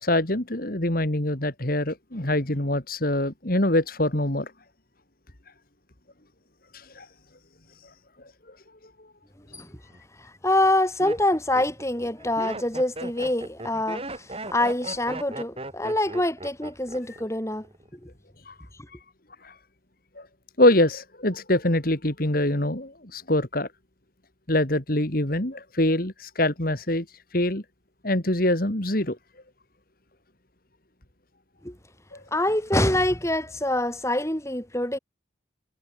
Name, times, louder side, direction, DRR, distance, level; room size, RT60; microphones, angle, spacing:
voice 1, 0.0-4.5 6.7-7.1 18.5-18.6 19.4-19.5 20.2-20.3 20.6-23.7 24.5-27.0 27.3-27.6 28.0-29.2 32.1-32.2, left 1 dB, 45° left, 2.9 m, -24 dB
Laughter, 9.6-10.0 10.6-17.3 17.5-18.0, right 2 dB, 30° right, 7.5 m, -37 dB
voice 2, 10.2-17.7 18.0-18.1 31.6-31.8 32.3-35.0, left 1 dB, 15° left, 4.8 m, -25 dB
head